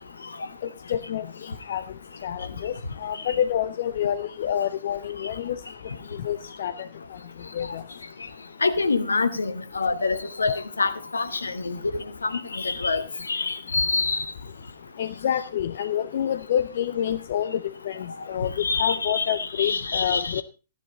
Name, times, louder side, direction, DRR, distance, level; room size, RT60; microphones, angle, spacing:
voice 1, 0.9-1.8 2.2-2.7 3.0-5.6 6.1-6.7 7.5-7.8 15.0-20.4, left 10 dB, 50° left, 0.6 m, -27 dB
voice 2, 8.6-14.2 18.6-20.4, left 4 dB, 70° left, 1.2 m, -26 dB
14.5 x 10.0 x 4.0 m
figure-of-eight pair, 115°, 0 cm